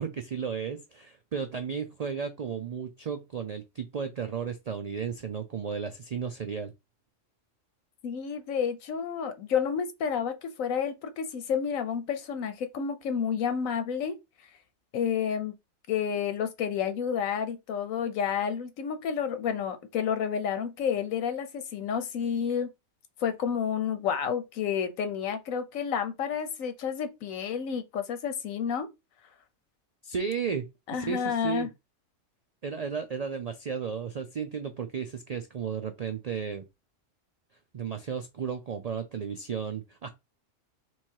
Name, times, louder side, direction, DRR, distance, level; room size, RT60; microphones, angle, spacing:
voice 1, 0.0-6.7 30.0-30.7 30.9-31.7 32.6-36.6 37.7-40.1, right 6 dB, 65° right, 0.4 m, -34 dB
voice 2, 8.0-14.2 14.9-15.5 15.9-22.7 23.2-28.9 30.9-31.7, left 7 dB, 90° left, 1.2 m, -30 dB
3.6 x 3.0 x 4.5 m
omnidirectional pair, 1.4 m